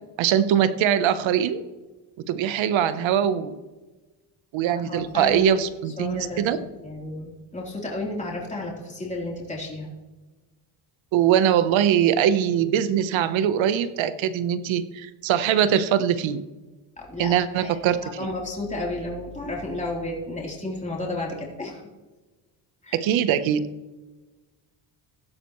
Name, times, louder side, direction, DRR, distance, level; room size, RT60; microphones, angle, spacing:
voice 1, 0.2-1.6 2.3-3.6 4.5-6.6 11.1-16.4 17.2-18.0 22.9-23.7, right 9 dB, 75° right, 13 dB, 1.1 m, -22 dB
voice 2, 4.7-5.6 6.0-9.9 17.0-21.8 22.8-23.0, left 2 dB, 15° left, -2 dB, 3.6 m, -32 dB
16.5 x 11.0 x 3.2 m, 1.2 s
cardioid pair, 95°, 47 cm